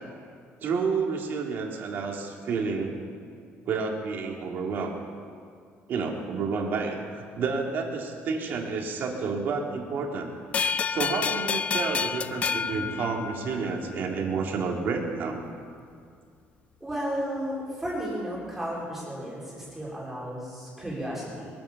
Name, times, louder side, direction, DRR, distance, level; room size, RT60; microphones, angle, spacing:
voice 1, 0.6-3.0 3.7-5.0 5.9-10.3 10.9-15.4, right 4 dB, 45° right, 1 dB, 2.1 m, -30 dB
sound 1, 10.5-13.8, left 6 dB, 25° left, 0.4 m, -29 dB
voice 2, 16.8-21.5, equal, 5° right, -6 dB, 3.6 m, -33 dB
22.0 x 9.4 x 7.0 m, 2.2 s
cardioid pair, 180°, 5 cm